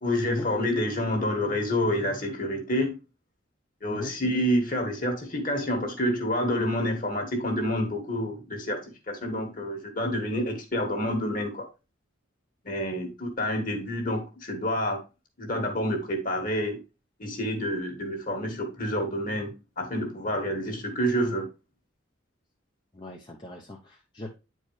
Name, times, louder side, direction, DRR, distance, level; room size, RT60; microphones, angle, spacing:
voice 1, 0.0-3.0 3.8-8.8 9.1-11.7 12.7-15.0 15.4-16.8 17.2-21.5, equal, 40° left, 1.8 m, -28 dB
voice 2, 22.9-24.4, left 1 dB, 25° left, 0.8 m, -39 dB
9.6 x 4.6 x 3.2 m
head